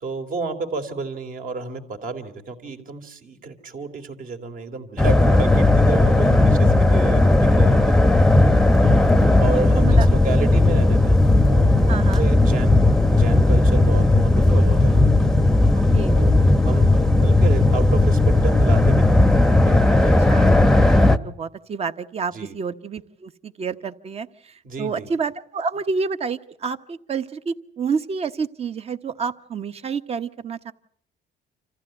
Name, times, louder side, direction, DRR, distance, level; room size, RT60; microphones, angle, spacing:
voice 1, 0.0-8.0 9.4-11.2 11.5-15.1 16.1-16.4 16.6-19.4 19.6-20.2 22.3-22.5 24.6-25.1, right 4 dB, 55° right, 7 dB, 2.9 m, -31 dB
sound 1, 5.0-21.2, left 2 dB, 5° left, 0.8 m, -16 dB
voice 2, 6.2-6.7 8.8-9.4 9.8-10.1 11.9-12.2 15.7-16.2 20.3-20.4 21.1-30.7, right 5 dB, 35° right, 11 dB, 1.1 m, -29 dB
27.0 x 14.5 x 9.0 m, 0.66 s
cardioid pair, 110°, 17 cm